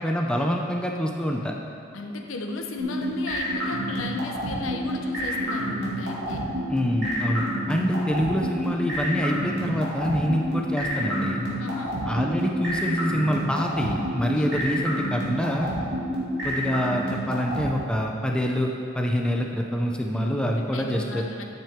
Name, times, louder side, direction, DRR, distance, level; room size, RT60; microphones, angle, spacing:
voice 1, 0.0-1.5 6.7-11.5 12.1-15.7 16.4-18.7 18.9-21.3, equal, 5° left, 0 dB, 0.6 m, -26 dB
voice 2, 1.9-6.5 11.6-12.0 14.3-14.6 20.7-21.4, left 3 dB, 85° left, 3 dB, 0.9 m, -35 dB
sound 1, 2.8-17.6, equal, 60° right, 2.3 m, -28 dB
10.5 x 8.8 x 3.6 m, 2.4 s
head